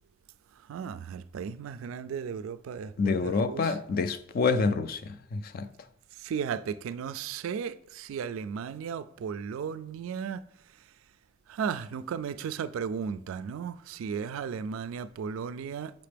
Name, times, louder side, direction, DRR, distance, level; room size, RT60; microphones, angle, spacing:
voice 1, 0.7-3.6 6.2-10.4 11.5-15.9, right 6 dB, 70° right, 0.3 m, -35 dB
voice 2, 3.0-5.7, left 4 dB, 45° left, 0.3 m, -27 dB
5.9 x 5.7 x 3.3 m
head